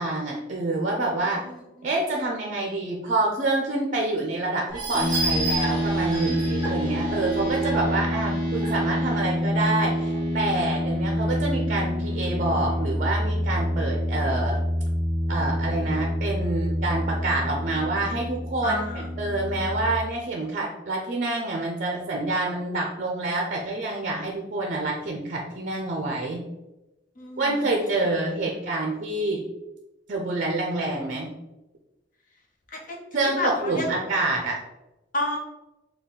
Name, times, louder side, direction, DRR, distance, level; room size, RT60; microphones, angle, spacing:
voice 1, 0.0-1.4 1.8-14.6 15.3-26.4 27.4-29.4 30.1-31.3 33.1-34.6, right 2 dB, 40° right, 0 dB, 0.5 m, -27 dB
voice 2, 1.2-1.9 18.6-19.1 27.2-27.8 32.7-33.9 35.1-35.4, left 1 dB, 45° left, 1 dB, 0.8 m, -31 dB
sound 1, 4.7-9.2 9.7-9.8 10.1-10.2, right 2 dB, 25° right, 1.0 m, -32 dB
sound 2, 4.9-20.0, equal, 30° left, 1.1 m, -27 dB
4.2 x 2.3 x 3.7 m, 0.97 s
head